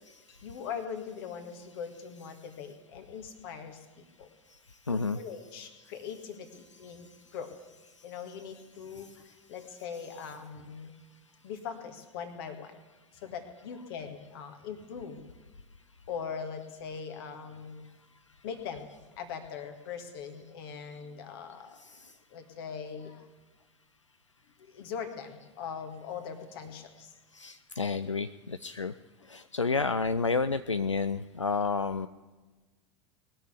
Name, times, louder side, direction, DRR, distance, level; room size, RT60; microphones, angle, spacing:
voice 1, 0.3-4.3 4.9-7.5 8.0-9.2 9.5-10.9 11.4-12.8 13.2-15.2 16.1-17.9 18.4-18.9 19.2-21.8 22.3-23.3 24.7-27.1, left 6 dB, 55° left, 7 dB, 1.9 m, -41 dB
voice 2, 4.9-5.2 6.9-7.0 9.0-9.1 9.8-10.3 21.8-22.1 27.3-28.9 29.3-32.1, left 4 dB, 90° left, 12 dB, 0.4 m, -31 dB
20.0 x 6.9 x 9.4 m, 1.2 s
figure-of-eight pair, 85°, 15 cm